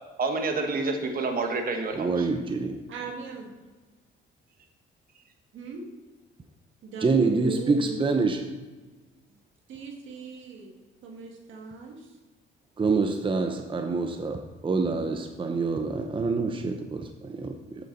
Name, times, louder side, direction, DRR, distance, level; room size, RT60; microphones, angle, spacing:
voice 1, 0.2-2.3, right 3 dB, 45° right, 1.4 m, -28 dB
voice 2, 1.9-2.8 7.0-8.6 12.8-17.9, right 4 dB, 25° right, 0.7 m, -26 dB
voice 3, 2.9-3.5 5.5-5.9 6.8-8.1 9.7-10.7 11.0-12.1, right 5 dB, 75° right, 1.9 m, -39 dB
8.3 x 7.5 x 3.9 m
cardioid pair, 90°, 20 cm